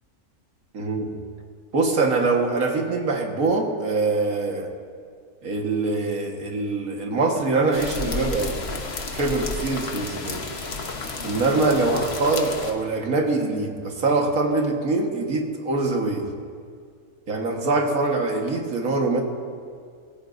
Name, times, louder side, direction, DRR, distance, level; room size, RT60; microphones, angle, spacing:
voice 1, 0.7-1.1 1.7-4.7 5.4-8.6 9.1-10.4 11.2-16.3 17.3-19.2, right 3 dB, 65° right, 2 dB, 2.0 m, -23 dB
sound 1, 7.7-12.7, left 3 dB, 45° left, 1.3 m, -31 dB
25.5 x 15.0 x 2.6 m, 2.1 s
omnidirectional pair, 1.6 m